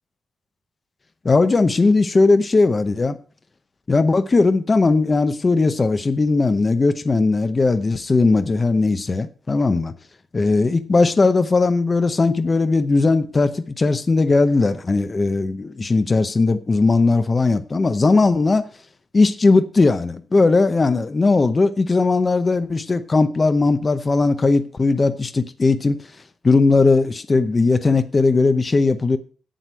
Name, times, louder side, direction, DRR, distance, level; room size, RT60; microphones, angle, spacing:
voice 1, 1.2-3.2 3.9-9.9 10.3-18.7 19.1-26.0 26.4-29.2, left 3 dB, 25° left, 0.7 m, -18 dB
7.9 x 7.6 x 8.2 m
wide cardioid pair, 175°, 0 cm